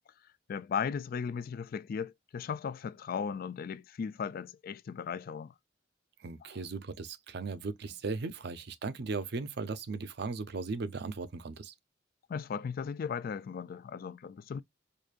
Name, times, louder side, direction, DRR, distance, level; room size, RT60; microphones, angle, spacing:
voice 1, 0.5-5.5 6.4-6.5 12.3-14.6, left 6 dB, 50° left, 0.3 m, -36 dB
voice 2, 6.2-11.7, right 4 dB, 60° right, 0.5 m, -37 dB
4.8 x 2.6 x 2.4 m
head